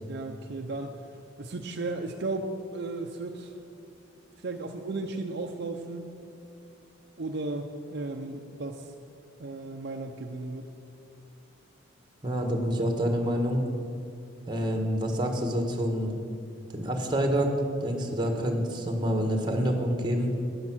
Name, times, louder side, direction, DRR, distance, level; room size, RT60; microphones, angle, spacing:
voice 1, 0.1-1.0 1.4-3.5 4.4-6.1 7.2-8.9 9.4-10.7, right 2 dB, 55° right, 4 dB, 0.7 m, -35 dB
voice 2, 12.2-13.6 14.5-16.1 16.7-20.3, equal, 25° right, 3 dB, 1.5 m, -27 dB
12.0 x 10.0 x 6.1 m, 2.6 s
head